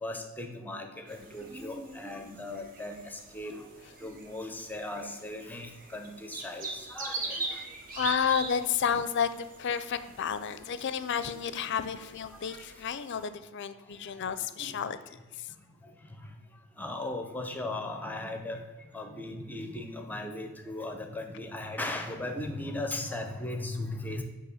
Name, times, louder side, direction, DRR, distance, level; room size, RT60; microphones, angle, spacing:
voice 1, 0.0-3.7 4.0-7.6 12.5-12.7 14.6-14.8 15.8-15.9 16.8-18.6 18.9-24.2, left 2 dB, 10° left, 5 dB, 0.7 m, -37 dB
sound 1, 1.1-13.3, right 3 dB, 45° right, 0.9 m, -43 dB
voice 2, 7.9-15.0 15.4-15.5, left 7 dB, 55° left, 12 dB, 0.4 m, -31 dB
8.4 x 2.9 x 6.3 m, 1.2 s
head